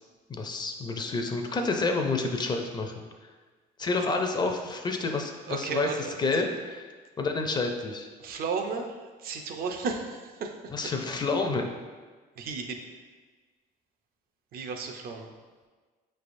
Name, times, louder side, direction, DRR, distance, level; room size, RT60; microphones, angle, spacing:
voice 1, 0.3-3.0 3.8-6.9 7.2-8.1 10.7-11.7, left 3 dB, 25° left, 4 dB, 0.4 m, -29 dB
voice 2, 5.5-6.4 8.2-8.9 9.2-10.5 12.4-12.8 14.5-15.3, right 5 dB, 60° right, 4 dB, 0.5 m, -33 dB
4.9 x 3.3 x 2.5 m, 1.4 s
cardioid pair, 110°, 17 cm